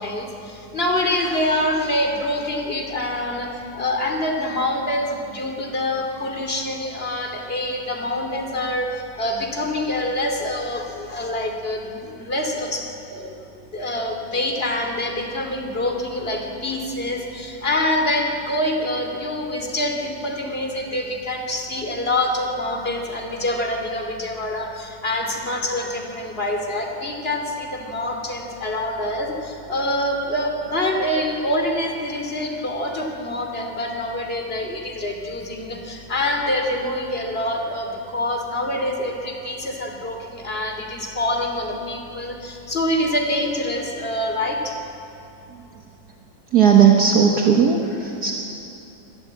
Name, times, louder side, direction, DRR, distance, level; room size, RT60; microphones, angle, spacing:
voice 1, 0.0-12.8 13.1-44.7, left 1 dB, 30° left, 3 dB, 2.9 m, -26 dB
voice 2, 46.5-48.3, right 7 dB, 60° right, 1 dB, 1.9 m, -16 dB
24.5 x 19.0 x 8.7 m, 2.8 s
omnidirectional pair, 2.0 m